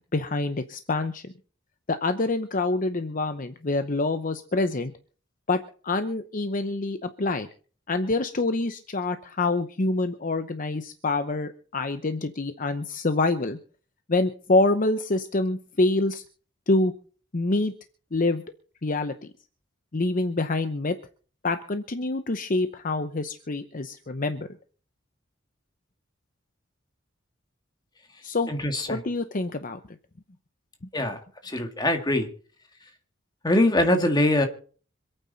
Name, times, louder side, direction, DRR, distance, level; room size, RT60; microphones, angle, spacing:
voice 1, 0.1-1.3 1.9-4.9 5.5-7.5 7.9-13.6 14.1-16.2 16.7-16.9 17.3-17.7 18.1-18.4 18.8-19.1 19.9-21.0 21.4-24.5 28.2-28.5 28.9-30.0, left 2 dB, 45° left, 9 dB, 0.8 m, -26 dB
voice 2, 28.5-29.0 30.9-32.3 33.4-34.5, left 1 dB, 20° left, 5 dB, 2.0 m, -23 dB
26.5 x 9.1 x 4.1 m, 0.42 s
head